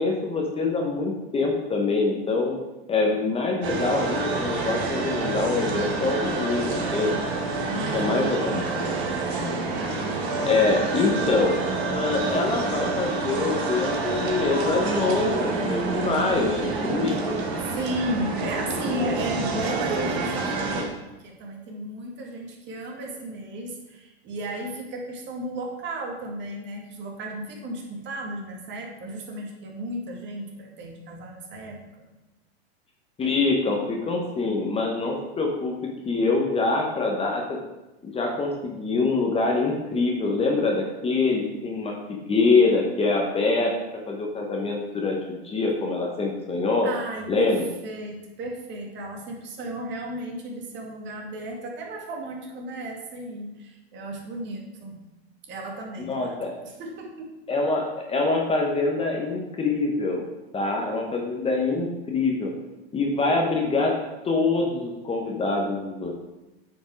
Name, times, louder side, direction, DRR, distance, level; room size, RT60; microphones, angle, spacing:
voice 1, 0.0-2.6 2.9-7.2 7.9-8.7 10.4-11.6 11.8-17.4 33.2-37.6 38.0-43.7 44.1-46.9 47.3-47.6 56.1-56.5 57.5-60.2 60.5-62.5 62.9-63.9 64.2-66.1, left 3 dB, 20° left, 0 dB, 1.2 m, -25 dB
sound 1, 3.6-20.8, right 3 dB, 75° right, 2.5 m, -28 dB
voice 2, 7.7-8.4 17.7-31.8 46.8-47.6 47.8-55.0 55.4-56.4 56.6-57.3, right 1 dB, 35° right, 1 dB, 1.9 m, -34 dB
9.1 x 5.3 x 4.7 m, 1.0 s
hypercardioid pair, 125°, 32 cm